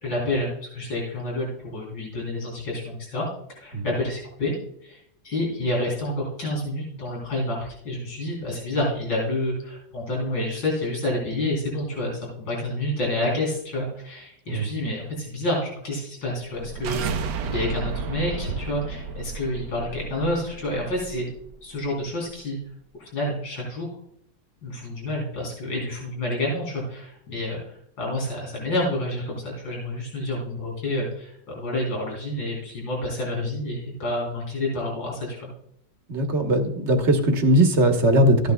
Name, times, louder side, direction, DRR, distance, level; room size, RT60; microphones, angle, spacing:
voice 1, 0.0-3.3 3.5-4.5 4.8-5.0 5.2-17.0 17.4-21.3 21.6-22.6 23.0-23.9 24.6-35.5, left 1 dB, 75° left, -3 dB, 4.1 m, -29 dB
sound 1, 16.4-21.5, right 5 dB, 70° right, 1.2 m, -33 dB
voice 2, 36.1-38.5, right 1 dB, 40° right, 4 dB, 1.3 m, -19 dB
14.0 x 9.4 x 2.2 m, 0.69 s
omnidirectional pair, 2.1 m